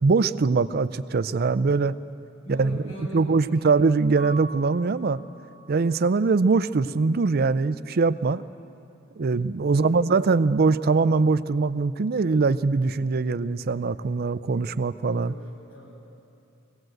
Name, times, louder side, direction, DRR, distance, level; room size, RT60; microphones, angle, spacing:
voice 1, 0.0-1.9 2.5-2.8 3.1-5.2 5.7-8.4 9.2-15.3, right 4 dB, 50° right, 15 dB, 0.5 m, -22 dB
voice 2, 2.4-3.7 9.7-10.1 15.1-16.0, equal, 85° left, -2 dB, 6.2 m, -41 dB
Mallet percussion, 4.2-6.0, right 2 dB, 55° left, 2.5 m, -42 dB
22.5 x 17.5 x 7.8 m, 2.7 s
head